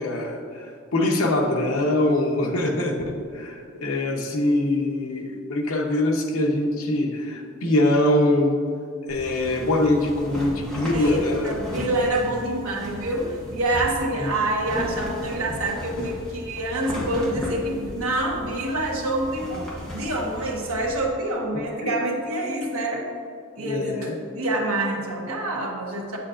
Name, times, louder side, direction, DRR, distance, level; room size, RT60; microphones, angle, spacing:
voice 1, 0.0-8.6 9.1-11.6 14.2-14.3 21.5-21.9 23.6-24.1, left 1 dB, 85° left, 1 dB, 0.9 m, -23 dB
sound 1, 9.1-21.0, equal, 5° left, 1.1 m, -36 dB
voice 2, 10.9-23.1 23.6-26.2, right 1 dB, 80° right, -1 dB, 1.2 m, -27 dB
7.7 x 7.3 x 2.5 m, 2.3 s
head